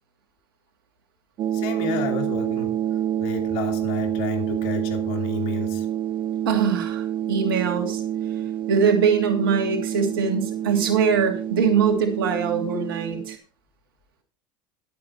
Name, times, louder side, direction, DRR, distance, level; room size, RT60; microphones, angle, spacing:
sound 1, 1.4-13.4, right 10 dB, 45° right, 1.0 m, -28 dB
voice 1, 1.5-2.8 3.2-5.9, left 7 dB, 65° left, 2.8 m, -31 dB
voice 2, 6.4-8.0 8.7-13.4, right 6 dB, 85° right, 2.9 m, -22 dB
11.5 x 8.4 x 4.5 m
hypercardioid pair, 85°, 12 cm